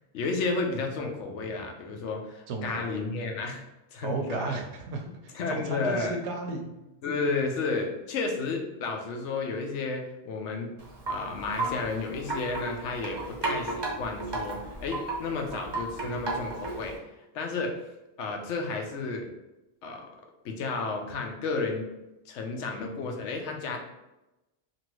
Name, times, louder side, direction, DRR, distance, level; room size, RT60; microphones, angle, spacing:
voice 1, 0.1-3.6 3.9-4.6 5.3-6.2 7.0-10.7 11.1-16.9 17.3-17.7 18.2-19.3 19.8-20.0 20.4-21.9 22.3-23.8, left 3 dB, 90° left, 2 dB, 0.9 m, -32 dB
voice 2, 2.5-3.1 4.0-6.7, right 3 dB, 80° right, 3 dB, 0.9 m, -34 dB
Wind chime, 10.8-17.0, right 2 dB, 30° right, 0.5 m, -34 dB
2.8 x 2.6 x 3.0 m, 0.98 s
omnidirectional pair, 1.2 m